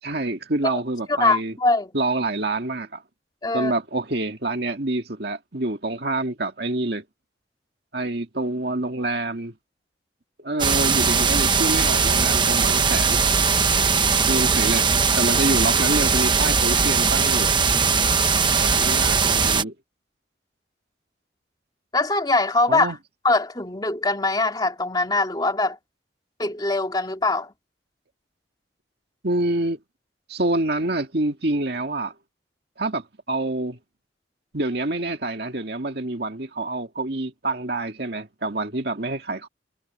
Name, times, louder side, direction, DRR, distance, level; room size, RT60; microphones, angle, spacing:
voice 1, 0.0-1.6 1.9-3.0 3.5-7.0 7.9-9.5 10.4-13.2 14.3-17.5 18.6-19.7 22.7-23.0 29.2-29.8 30.3-32.1 32.8-33.8 34.5-39.5, right 2 dB, 55° right, 2.2 m, -27 dB
voice 2, 1.1-1.9 3.4-3.7 18.0-18.1 21.9-22.9 23.2-25.8 26.4-27.5, left 2 dB, 20° left, 2.5 m, -22 dB
sound 1, 10.6-19.6, right 5 dB, 25° right, 1.0 m, -20 dB
head